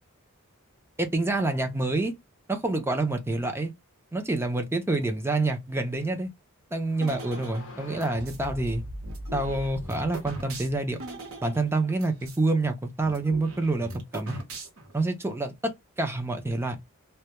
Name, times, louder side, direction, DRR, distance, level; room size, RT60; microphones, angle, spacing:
voice 1, 1.0-2.1 2.5-3.7 4.1-6.3 6.7-8.8 9.3-11.0 11.4-14.4 14.9-16.8, right 2 dB, 10° right, 0.4 m, -27 dB
sound 1, 6.8-11.6, equal, 65° left, 0.6 m, -42 dB
sound 2, 7.0-8.4 9.0-12.4 12.7-12.8 13.0-15.0, right 2 dB, 70° right, 0.8 m, -41 dB
2.2 x 2.1 x 2.8 m
head